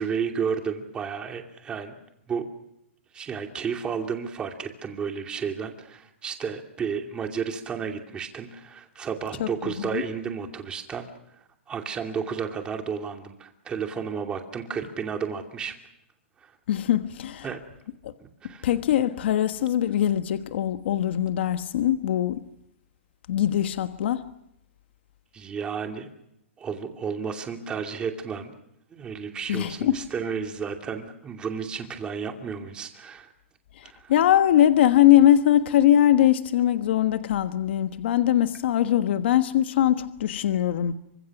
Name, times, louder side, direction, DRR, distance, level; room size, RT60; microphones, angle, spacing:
voice 1, 0.0-1.9 2.3-2.4 3.1-11.1 11.7-15.7 16.4-16.5 17.4-17.6 18.2-18.7 25.3-26.1 26.6-28.5 28.9-33.3 33.8-34.1, right 6 dB, 15° right, 2.6 m, -32 dB
voice 2, 9.4-10.0 16.7-17.4 18.0-18.1 18.6-22.4 23.3-24.2 29.5-30.0 34.1-40.9, left 11 dB, 60° left, 1.3 m, -21 dB
29.0 x 25.0 x 6.1 m
hypercardioid pair, 160°, 7 cm